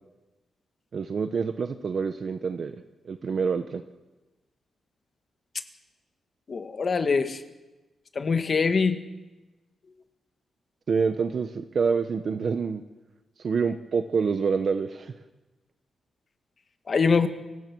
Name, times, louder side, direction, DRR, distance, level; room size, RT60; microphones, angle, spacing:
voice 1, 0.9-2.7 3.0-3.8 10.9-12.8 13.4-15.1, right 5 dB, 45° right, 7 dB, 1.2 m, -27 dB
voice 2, 6.5-7.4 8.2-9.0 16.9-17.3, left 5 dB, 40° left, 7 dB, 1.9 m, -23 dB
30.0 x 24.0 x 6.3 m, 1.1 s
wide cardioid pair, 155°, 0 cm